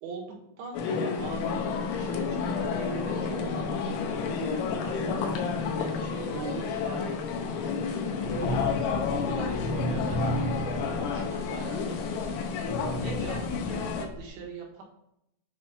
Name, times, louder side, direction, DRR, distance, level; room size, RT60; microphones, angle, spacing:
voice 1, 0.0-3.9 4.8-8.3 8.8-12.4 13.0-14.8, right 4 dB, 75° right, 0 dB, 3.6 m, -42 dB
sound 1, 0.7-14.1, left 5 dB, 85° left, 3.1 m, -30 dB
sound 2, 1.8-7.5 7.8-14.3, right 1 dB, 25° right, 1.0 m, -36 dB
8.4 x 3.2 x 4.2 m, 0.79 s
omnidirectional pair, 5.4 m